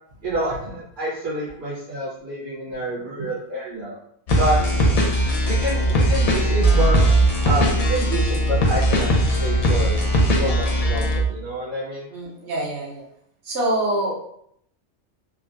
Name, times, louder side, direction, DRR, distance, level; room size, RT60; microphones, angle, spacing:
voice 1, 0.2-4.0 4.4-4.6 5.5-7.0 7.4-9.1 9.4-10.0 10.4-12.1, right 1 dB, 45° right, -8 dB, 0.9 m, -28 dB
sound 1, 4.3-11.2, equal, 60° left, 0.4 m, -19 dB
voice 2, 4.6-4.9 12.1-13.0 13.4-14.1, right 1 dB, 65° right, -4 dB, 1.1 m, -26 dB
3.5 x 2.1 x 2.5 m, 0.72 s
omnidirectional pair, 1.3 m